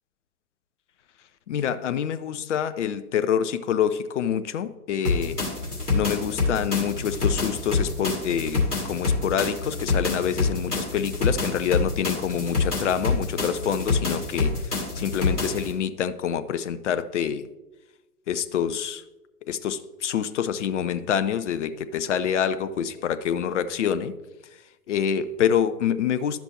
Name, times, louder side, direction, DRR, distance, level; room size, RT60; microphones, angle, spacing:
voice 1, 1.5-5.4 5.9-17.4 18.3-19.0 19.5-24.1 24.9-26.4, left 8 dB, 50° left, 12 dB, 0.5 m, -26 dB
sound 1, 5.0-15.7, left 3 dB, 75° left, 2.5 m, -27 dB
11.0 x 6.0 x 2.8 m, 1.1 s
figure-of-eight pair, 110°, 47 cm